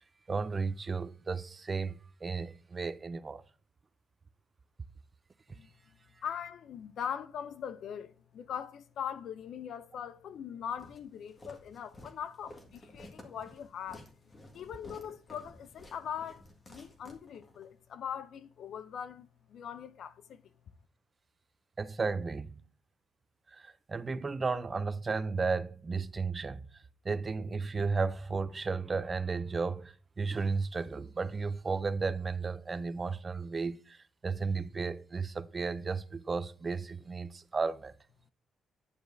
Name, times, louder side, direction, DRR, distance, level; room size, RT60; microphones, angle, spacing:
voice 1, 0.3-3.4 21.8-22.6 23.5-26.6 27.0-34.0 34.2-37.9, right 4 dB, 30° right, 0.5 m, -34 dB
voice 2, 6.2-14.1 14.5-20.5, left 8 dB, 70° left, 0.4 m, -41 dB
Walk footsteps, 10.8-17.7, left 1 dB, 30° left, 1.7 m, -53 dB
9.8 x 7.0 x 2.6 m
cardioid pair, 90°, 0 cm